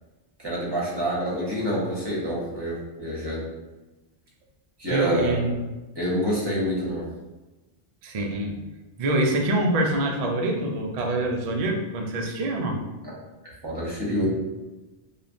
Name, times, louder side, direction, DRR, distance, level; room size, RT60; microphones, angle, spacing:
voice 1, 0.4-3.4 4.8-5.4 6.0-7.0 13.0-13.1 13.6-14.3, equal, 25° right, -5 dB, 0.7 m, -27 dB
voice 2, 4.9-5.5 8.0-8.7 9.0-12.8, right 1 dB, 65° right, 1 dB, 0.3 m, -25 dB
3.3 x 2.3 x 2.5 m, 1.1 s
omnidirectional pair, 1.2 m